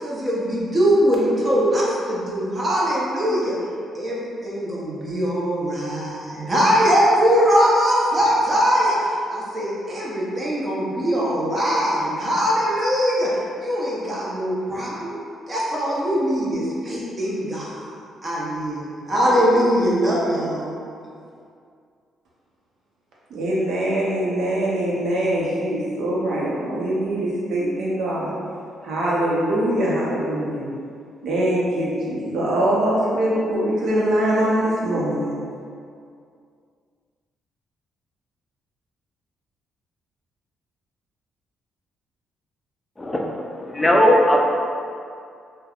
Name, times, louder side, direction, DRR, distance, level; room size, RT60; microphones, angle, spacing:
voice 1, 0.0-3.5 3.9-13.3 13.6-15.1 15.5-17.8 18.2-20.8, equal, 30° right, -6 dB, 0.7 m, -21 dB
voice 2, 23.3-28.3 28.8-30.7 31.2-35.3, right 1 dB, 70° right, -6 dB, 0.7 m, -23 dB
voice 3, 43.0-44.4, left 1 dB, 15° left, 0 dB, 0.4 m, -18 dB
3.3 x 2.1 x 2.3 m, 2.3 s
cardioid pair, 90°, 0 cm